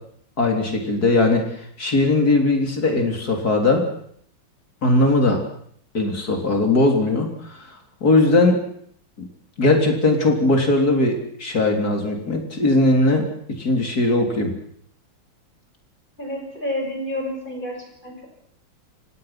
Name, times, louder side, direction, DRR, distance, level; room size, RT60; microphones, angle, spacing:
voice 1, 0.4-3.8 4.8-5.4 5.9-7.7 8.0-8.6 9.2-9.3 9.6-13.3 13.6-14.5, left 2 dB, 45° left, 3 dB, 4.0 m, -19 dB
voice 2, 16.2-17.8 18.0-18.3, left 1 dB, 20° left, 1 dB, 6.0 m, -29 dB
29.5 x 17.0 x 5.9 m, 0.66 s
omnidirectional pair, 2.3 m